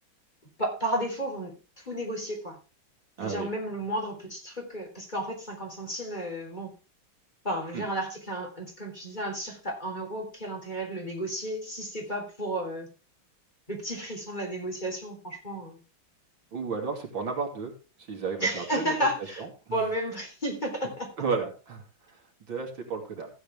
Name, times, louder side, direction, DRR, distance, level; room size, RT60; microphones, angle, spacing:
voice 1, 0.6-2.6 3.2-6.7 7.4-12.9 13.7-15.8 18.4-19.4 19.7-21.1, right 1 dB, 20° left, 1 dB, 3.7 m, -32 dB
voice 2, 3.2-3.5 7.7-7.8 16.5-17.7 18.0-18.9 19.4-19.8 21.2-22.2 22.5-23.3, right 5 dB, 65° right, 2 dB, 3.3 m, -33 dB
15.0 x 8.6 x 3.5 m, 0.32 s
omnidirectional pair, 2.3 m